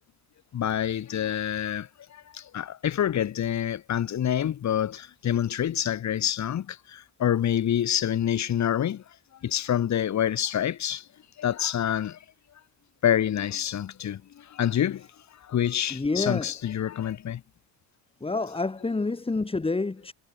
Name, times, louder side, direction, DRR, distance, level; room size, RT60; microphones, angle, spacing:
voice 1, 0.5-9.0 9.4-11.0 11.4-12.2 13.0-15.1 15.4-17.4, left 10 dB, 40° left, 3.9 m, -27 dB
voice 2, 15.9-16.5 18.2-20.1, left 3 dB, 15° left, 6.0 m, -28 dB
cardioid pair, 155°, 41 cm